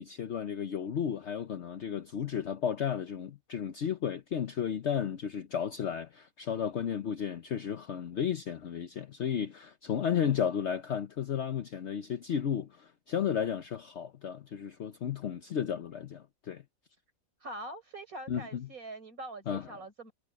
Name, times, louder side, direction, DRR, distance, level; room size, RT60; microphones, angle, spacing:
voice 1, 0.0-16.6 18.3-18.7 19.5-19.7, left 8 dB, 55° left, 1.0 m, -33 dB
voice 2, 17.4-20.1, right 2 dB, 75° right, 5.0 m, -43 dB
omnidirectional pair, 1.5 m